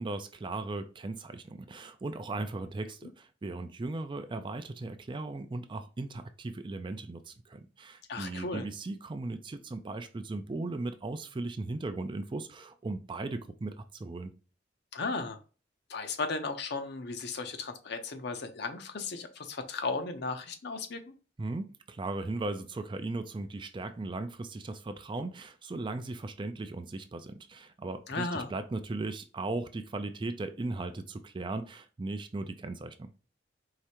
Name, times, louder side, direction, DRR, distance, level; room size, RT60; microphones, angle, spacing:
voice 1, 0.0-14.3 21.4-33.1, right 2 dB, 25° right, 0.4 m, -37 dB
voice 2, 8.1-8.7 14.9-15.4 15.9-21.0 28.1-28.5, left 3 dB, 60° left, 0.7 m, -35 dB
4.8 x 3.2 x 2.9 m
head